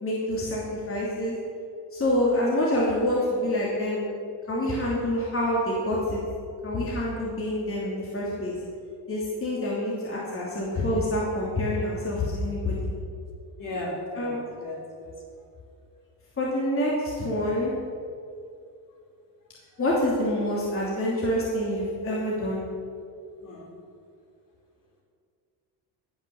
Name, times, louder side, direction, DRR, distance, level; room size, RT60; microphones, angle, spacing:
voice 1, 0.0-1.3 1.9-4.1 4.5-6.2 6.6-8.5 9.1-12.9 14.1-14.4 16.4-17.7 19.8-22.6, left 1 dB, 30° left, -6 dB, 2.9 m, -27 dB
voice 2, 13.6-15.1 23.4-23.7, left 1 dB, 50° left, -2 dB, 3.7 m, -36 dB
17.0 x 5.9 x 7.1 m, 2.4 s
cardioid pair, 105°, 42 cm